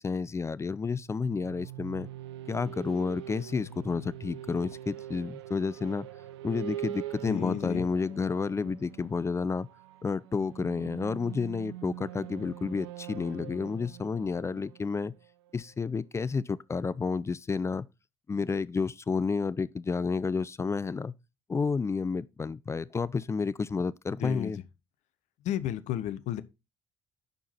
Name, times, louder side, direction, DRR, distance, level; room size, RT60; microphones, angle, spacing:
voice 1, 0.0-2.1 2.5-6.1 6.4-9.7 10.0-15.1 15.5-17.9 18.3-21.1 21.5-24.6, left 4 dB, 20° left, 0.4 m, -30 dB
sound 1, 1.1-15.7, right 13 dB, 70° right, 0.5 m, -43 dB
voice 2, 7.3-7.9 24.2-24.5 25.4-26.4, left 12 dB, 55° left, 0.7 m, -32 dB
10.5 x 4.7 x 4.1 m
figure-of-eight pair, 50°, 15 cm